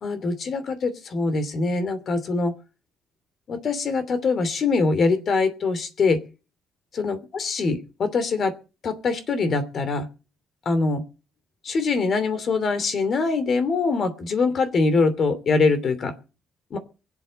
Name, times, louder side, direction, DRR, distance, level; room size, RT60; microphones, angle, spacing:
voice 1, 0.0-2.5 3.5-6.2 6.9-8.5 8.8-10.1 10.6-11.0 11.6-16.1 16.7-16.8, left 4 dB, 40° left, 11 dB, 2.8 m, -23 dB
23.0 x 8.4 x 6.5 m, 0.34 s
cardioid pair, 150°, 0 cm